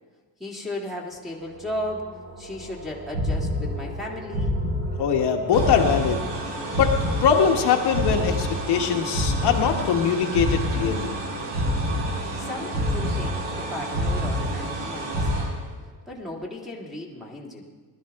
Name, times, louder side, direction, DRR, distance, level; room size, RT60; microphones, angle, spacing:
voice 1, 0.4-4.5 12.4-15.5 16.1-17.6, left 1 dB, ahead, -4 dB, 2.1 m, -35 dB
sound 1, 1.1-16.7, equal, 25° right, 2.5 m, -42 dB
sound 2, 3.1-4.0 4.3-5.2 5.5-7.6 7.9-10.0 10.3-11.2 11.5-12.4 12.7-13.6 13.9-14.8 15.1-15.3, left 1 dB, 50° right, 4.0 m, -27 dB
voice 2, 5.0-6.3 6.8-11.2, left 7 dB, 65° left, 2 dB, 1.3 m, -22 dB
sound 3, 5.5-15.7, right 2 dB, 75° right, 2.6 m, -34 dB
20.0 x 12.5 x 3.6 m, 1.3 s
cardioid pair, 140°, 44 cm